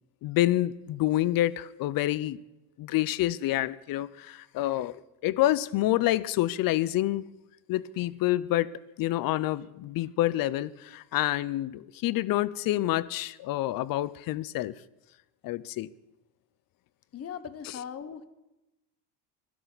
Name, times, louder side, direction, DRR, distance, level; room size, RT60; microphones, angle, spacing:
voice 1, 0.2-2.4 2.8-7.3 7.7-14.7 15.4-15.9, left 15 dB, 45° left, 0.6 m, -28 dB
voice 2, 17.1-18.3, left 7 dB, 30° left, 1.1 m, -39 dB
24.5 x 12.5 x 4.0 m
cardioid pair, 125°, 49 cm